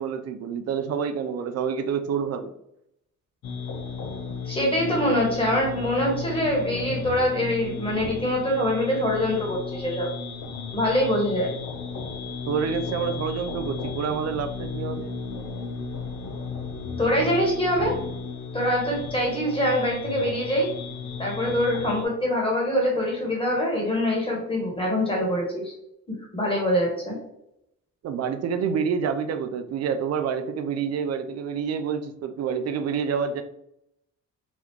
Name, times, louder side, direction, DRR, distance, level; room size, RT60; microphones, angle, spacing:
voice 1, 0.0-2.5 12.5-15.1 28.0-33.4, right 6 dB, 55° right, 9 dB, 0.5 m, -28 dB
sound 1, 3.4-22.1, left 4 dB, 65° left, 0.6 m, -34 dB
voice 2, 4.4-10.1 10.7-11.5 17.0-17.9 18.5-20.7 21.2-25.7 26.3-27.2, equal, 20° left, -2 dB, 1.4 m, -24 dB
3.0 x 2.3 x 3.5 m, 0.79 s
cardioid pair, 90°, 30 cm